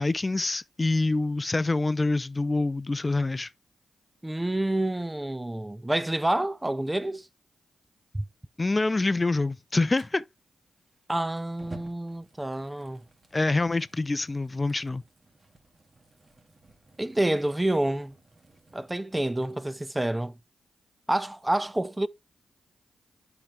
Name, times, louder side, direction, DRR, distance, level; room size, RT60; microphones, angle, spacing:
voice 1, 0.0-3.5 8.6-10.2 13.3-15.0, left 2 dB, 30° left, 0.5 m, -26 dB
voice 2, 4.2-7.3 8.1-8.2 11.1-13.0 17.0-18.2 18.7-20.4 21.1-22.1, right 1 dB, 15° right, 0.5 m, -28 dB
Fire, 10.0-18.9, right 2 dB, 40° right, 2.1 m, -54 dB
8.6 x 5.8 x 3.4 m
supercardioid pair, 40°, 0 cm